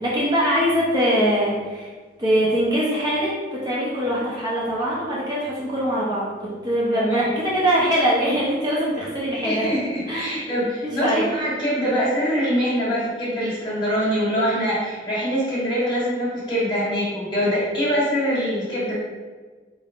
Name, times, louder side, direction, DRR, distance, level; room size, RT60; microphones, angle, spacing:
voice 1, 0.0-1.9 2.2-9.8 10.1-10.3 10.8-11.3, equal, 25° right, -6 dB, 0.6 m, -22 dB
voice 2, 6.9-7.4 9.4-18.9, equal, 25° left, -9 dB, 1.5 m, -24 dB
3.8 x 3.5 x 2.4 m, 1.4 s
head